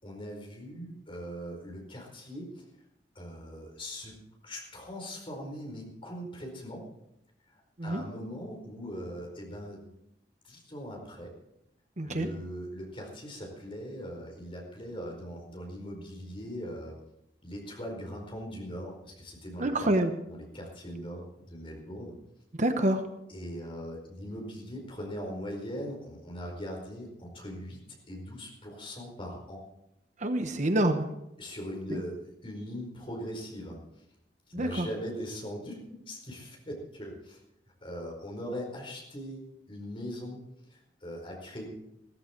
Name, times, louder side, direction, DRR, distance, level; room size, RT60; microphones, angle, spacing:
voice 1, 0.0-2.6 3.1-4.2 4.4-6.8 7.5-9.9 10.4-11.3 12.0-17.0 17.4-19.9 20.3-22.1 23.3-29.6 31.4-32.1 32.4-34.0 34.5-37.4 37.8-40.4 40.7-41.7, equal, 30° left, 0 dB, 4.7 m, -40 dB
voice 2, 12.0-12.3 19.6-20.1 22.5-23.1 30.2-31.1 31.9-32.0 34.5-34.9, right 1 dB, 45° right, 7 dB, 1.0 m, -27 dB
15.5 x 14.5 x 4.6 m, 0.83 s
head